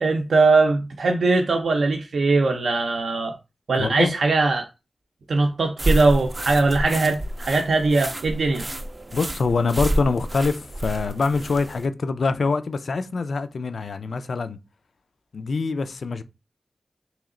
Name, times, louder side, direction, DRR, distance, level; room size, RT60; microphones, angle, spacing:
voice 1, 0.0-3.3 3.7-4.6 5.3-8.6, right 3 dB, 80° right, 0.5 m, -20 dB
voice 2, 3.8-4.2 9.1-14.6 15.3-16.2, left 4 dB, 75° left, 0.3 m, -24 dB
sound 1, 5.8-11.9, right 1 dB, 25° right, 0.3 m, -29 dB
3.0 x 2.9 x 3.7 m
wide cardioid pair, 85°, 0 cm